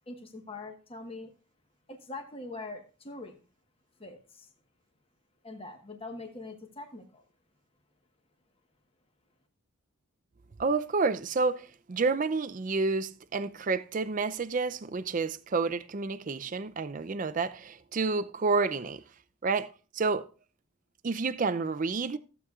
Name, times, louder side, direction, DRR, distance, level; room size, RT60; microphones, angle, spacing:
voice 1, 0.1-1.3 1.9-3.4 4.0-4.5 5.4-7.2, left 2 dB, 25° left, 1.2 m, -43 dB
voice 2, 10.6-19.0 19.4-19.7 19.9-20.3 21.0-22.2, right 4 dB, 35° right, 0.4 m, -29 dB
15.0 x 8.0 x 2.4 m
head